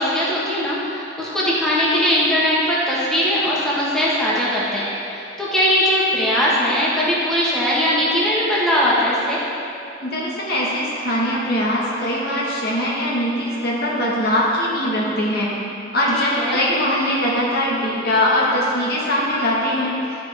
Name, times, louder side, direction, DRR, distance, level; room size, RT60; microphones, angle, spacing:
voice 1, 0.0-9.4 16.1-16.6, equal, 5° left, -8 dB, 1.2 m, -20 dB
voice 2, 10.0-15.5 15.9-19.9, left 1 dB, 55° left, -5 dB, 1.5 m, -21 dB
12.0 x 4.9 x 3.4 m, 2.8 s
head